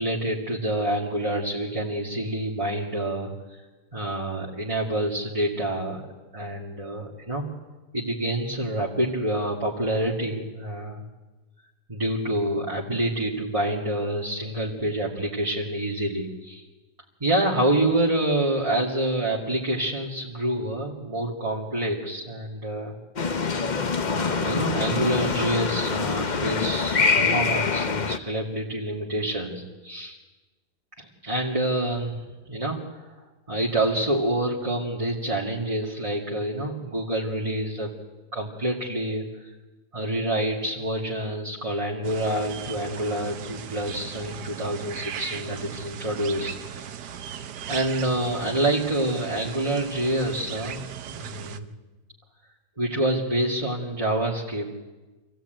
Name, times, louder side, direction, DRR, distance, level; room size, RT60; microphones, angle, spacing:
voice 1, 0.0-3.6 3.9-6.0 6.3-7.4 7.9-11.0 11.9-16.6 17.2-23.0 24.1-30.2 31.0-32.2 32.5-33.1 33.5-37.9 38.3-39.5 39.9-46.9 47.7-50.8 51.1-51.7 52.8-54.7, right 1 dB, 20° right, -3 dB, 2.1 m, -27 dB
sound 1, 23.2-28.2, left 4 dB, 35° left, 0.8 m, -25 dB
sound 2, 42.0-51.6, right 8 dB, 75° right, 1.5 m, -38 dB
26.0 x 16.0 x 9.2 m, 1.2 s
omnidirectional pair, 1.8 m